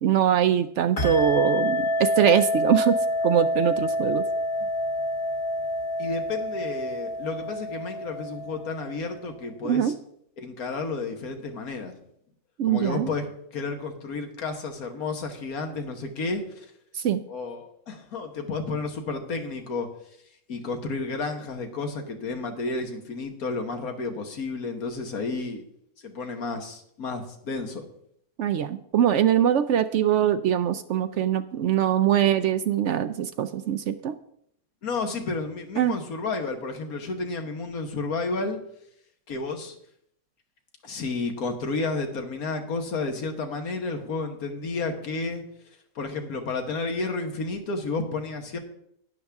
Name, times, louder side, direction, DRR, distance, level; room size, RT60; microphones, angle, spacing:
voice 1, 0.0-3.0 3.2-4.3 9.6-9.9 12.6-13.1 16.9-17.2 28.4-34.2 35.8-35.9, right 10 dB, 65° right, 11 dB, 0.8 m, -22 dB
sound 1, 1.0-9.1, left 1 dB, 60° left, 2.2 m, -27 dB
voice 2, 6.0-9.9 10.4-12.0 12.6-13.2 13.5-16.7 17.3-19.9 20.5-25.6 26.0-27.9 34.8-38.6 39.3-39.7 40.8-45.4 45.9-48.6, left 3 dB, 85° left, 5 dB, 1.8 m, -31 dB
12.0 x 9.9 x 3.5 m, 0.72 s
omnidirectional pair, 1.5 m